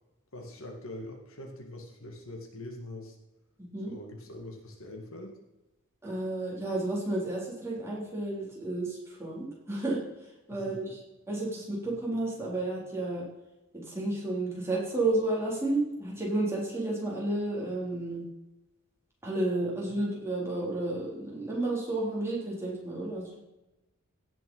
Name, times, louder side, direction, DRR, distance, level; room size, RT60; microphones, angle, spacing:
voice 1, 0.3-3.2 3.9-5.3 10.5-10.8, left 1 dB, 65° left, 2 dB, 1.9 m, -43 dB
voice 2, 3.6-3.9 6.0-10.0 10.5-11.0 11.3-13.3 13.7-18.2 19.2-23.4, right 2 dB, 10° right, -4 dB, 3.7 m, -31 dB
17.0 x 6.1 x 5.5 m, 0.99 s
head